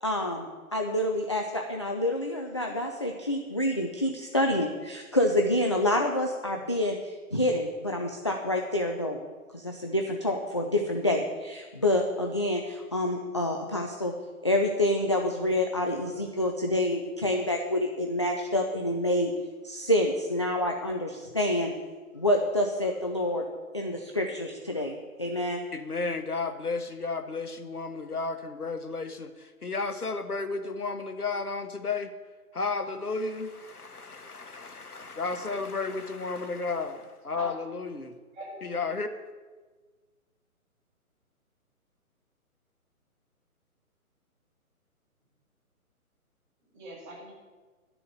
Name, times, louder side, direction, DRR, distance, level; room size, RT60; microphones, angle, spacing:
voice 1, 0.0-9.2 9.5-14.1 14.4-19.3 19.6-21.7 22.1-23.5 23.7-24.9 25.2-25.6, left 1 dB, 20° left, 1 dB, 0.4 m, -27 dB
voice 2, 25.7-32.1 32.5-38.1 38.6-39.1, left 4 dB, 85° left, 8 dB, 1.5 m, -33 dB
voice 3, 38.3-39.1 46.6-47.3, right 1 dB, 35° right, -3 dB, 4.9 m, -44 dB
12.0 x 6.9 x 9.1 m, 1.3 s
figure-of-eight pair, 140°, 44 cm